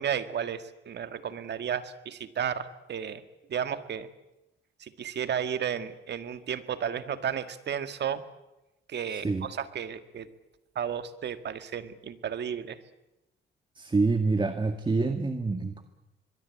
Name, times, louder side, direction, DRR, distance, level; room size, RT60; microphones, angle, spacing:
voice 1, 0.0-3.2 3.5-4.1 4.8-8.2 8.9-10.3 10.7-12.8, right 8 dB, 60° right, 10 dB, 1.8 m, -33 dB
voice 2, 13.8-15.8, right 3 dB, 25° right, 7 dB, 1.8 m, -26 dB
24.5 x 22.5 x 8.6 m, 0.97 s
cardioid pair, 90°, 20 cm